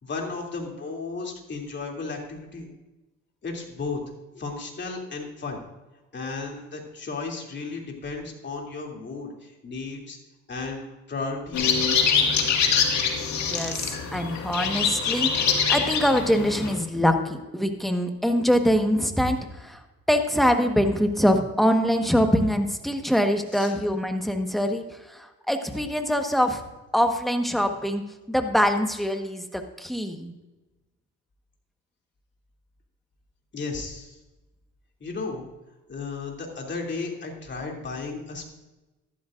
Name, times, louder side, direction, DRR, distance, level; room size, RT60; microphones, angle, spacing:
voice 1, 0.0-2.7 3.4-4.0 4.3-5.6 6.1-10.2 10.5-11.8 23.5-23.7 33.5-34.2 35.0-35.5 35.9-38.4, left 4 dB, 40° left, 0 dB, 2.9 m, -34 dB
sound 1, 11.5-16.7, left 6 dB, 70° left, 2.0 m, -24 dB
voice 2, 13.5-19.8 20.1-26.6 26.9-28.0 28.3-30.3, equal, ahead, 5 dB, 1.3 m, -24 dB
14.0 x 12.0 x 2.6 m, 1.1 s
cardioid pair, 85°, 29 cm